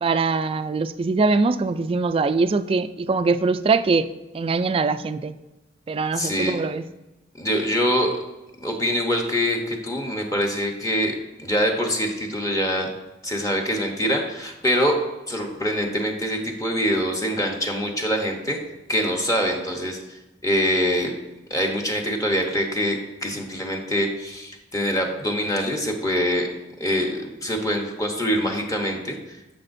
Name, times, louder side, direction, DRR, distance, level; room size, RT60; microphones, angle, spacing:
voice 1, 0.0-4.0 4.3-5.3 5.9-6.8, right 4 dB, 30° right, 12 dB, 0.3 m, -22 dB
voice 2, 6.1-6.6 7.4-8.1 8.6-12.9 13.2-15.0 15.3-18.6 18.9-20.0 20.4-21.1 21.5-26.5 26.8-29.2, equal, 20° left, 2 dB, 0.9 m, -24 dB
9.9 x 6.9 x 2.6 m, 0.99 s
head